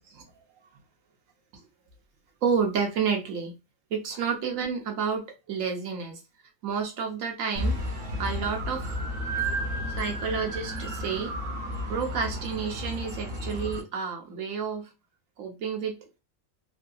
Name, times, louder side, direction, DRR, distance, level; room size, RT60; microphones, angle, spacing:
voice 1, 2.4-3.6 3.9-6.2 6.6-7.8 8.2-8.8 10.0-11.3 11.9-14.9 15.4-16.0, right 6 dB, 80° right, 1.2 m, -30 dB
sound 1, 7.6-13.8, equal, 50° right, 1.0 m, -32 dB
3.2 x 2.6 x 2.3 m
omnidirectional pair, 1.4 m